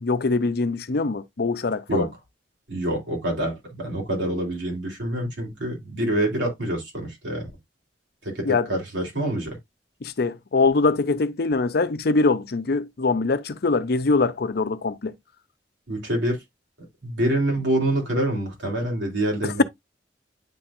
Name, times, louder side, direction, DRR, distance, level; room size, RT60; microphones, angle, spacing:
voice 1, 0.0-2.1 8.4-8.7 10.0-15.1 19.4-19.6, left 3 dB, 60° left, 0.6 m, -23 dB
voice 2, 2.7-7.5 8.2-9.6 15.9-16.4 17.0-19.6, right 1 dB, 90° right, 3.3 m, -26 dB
9.7 x 4.3 x 2.5 m
head